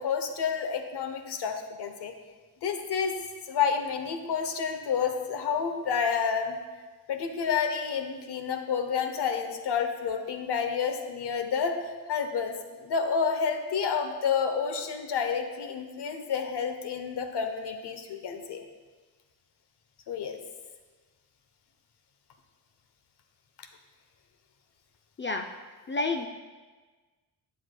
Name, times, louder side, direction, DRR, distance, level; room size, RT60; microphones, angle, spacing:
voice 1, 0.0-2.1 2.6-3.1 3.4-6.6 7.1-11.8 12.1-18.6 20.1-20.4, left 6 dB, 70° left, 6 dB, 0.8 m, -29 dB
voice 2, 25.9-26.3, left 3 dB, 30° left, 4 dB, 0.4 m, -29 dB
8.1 x 7.6 x 2.2 m, 1.3 s
cardioid pair, 75°, 42 cm